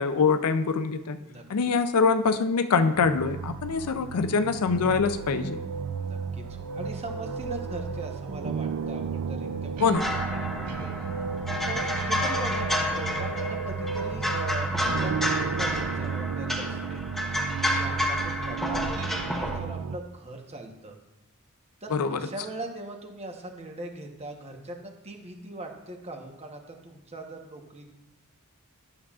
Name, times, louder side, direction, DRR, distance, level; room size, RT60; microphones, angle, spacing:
voice 1, 0.0-1.2 1.5-5.6 9.8-10.1 21.9-22.3, left 5 dB, 75° left, 10 dB, 0.5 m, -24 dB
sound 1, 3.0-20.0, right 5 dB, 80° right, 0.4 m, -33 dB
voice 2, 6.0-10.9 11.4-17.0 17.6-21.0 21.8-27.9, right 2 dB, 30° right, 2 dB, 1.0 m, -41 dB
sound 2, 9.9-19.6, left 1 dB, ahead, 0.9 m, -30 dB
11.0 x 7.0 x 2.4 m, 0.95 s
head